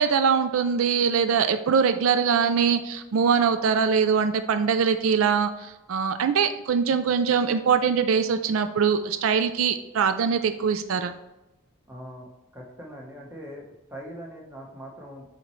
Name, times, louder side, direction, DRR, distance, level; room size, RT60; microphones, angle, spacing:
voice 1, 0.0-11.1, right 6 dB, 75° right, 10 dB, 0.4 m, -22 dB
voice 2, 11.9-12.3 12.5-13.6 13.9-15.2, equal, 10° right, -1 dB, 1.1 m, -41 dB
7.8 x 4.2 x 3.1 m, 1.0 s
head